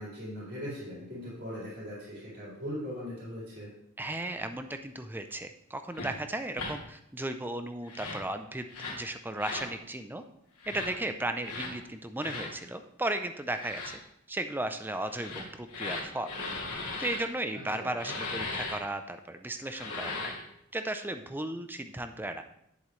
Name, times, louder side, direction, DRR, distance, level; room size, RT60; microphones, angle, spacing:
voice 1, 0.0-3.7 17.7-18.1, equal, 50° right, -8 dB, 4.1 m, -40 dB
voice 2, 4.0-10.2 10.7-14.0 14.3-16.4 16.7-20.3 20.7-22.4, right 1 dB, 10° right, 8 dB, 0.5 m, -35 dB
sound 1, 5.9-6.1 6.5-6.7 7.8-8.3 8.7-9.0 9.4-9.7 10.6-10.9 11.4-11.7 12.2-12.5 13.5-13.9 15.1-17.2 18.0-18.8 19.6-20.4, left 3 dB, 90° left, 2.6 m, -37 dB
10.5 x 7.8 x 3.2 m, 0.76 s
head